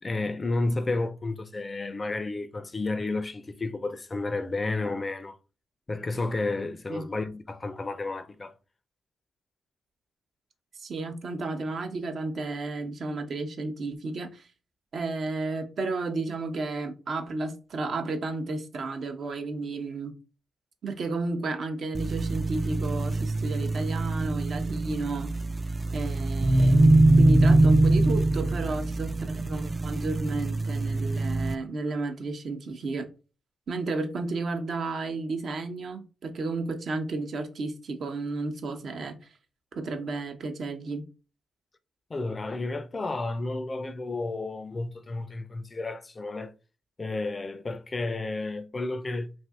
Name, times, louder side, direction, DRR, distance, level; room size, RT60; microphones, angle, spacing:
voice 1, 0.0-5.4 5.9-8.5 42.1-46.5 47.0-49.3, left 2 dB, 35° left, 0.4 m, -31 dB
voice 2, 10.8-14.5 14.9-20.1 20.8-25.3 25.9-33.1 33.7-39.3 39.8-41.1, right 3 dB, 65° right, 0.7 m, -32 dB
sound 1, 21.9-31.5, right 2 dB, 30° right, 0.3 m, -23 dB
2.6 x 2.6 x 3.4 m
supercardioid pair, 50°, 0 cm